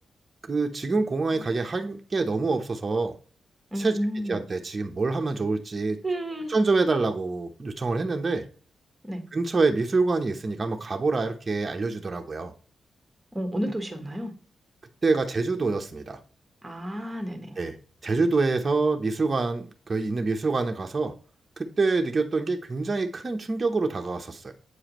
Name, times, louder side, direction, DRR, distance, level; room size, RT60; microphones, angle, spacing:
voice 1, 0.5-3.2 3.8-4.0 4.3-6.0 6.5-8.5 9.3-12.5 15.0-16.2 17.6-17.8 18.0-21.1 21.6-24.5, right 3 dB, 35° right, 3 dB, 0.9 m, -26 dB
voice 2, 3.7-4.4 6.0-6.5 9.0-9.2 13.3-14.3 16.6-17.6, right 1 dB, 15° right, 4 dB, 1.5 m, -31 dB
8.1 x 4.8 x 3.0 m, 0.40 s
cardioid pair, 90°, 0 cm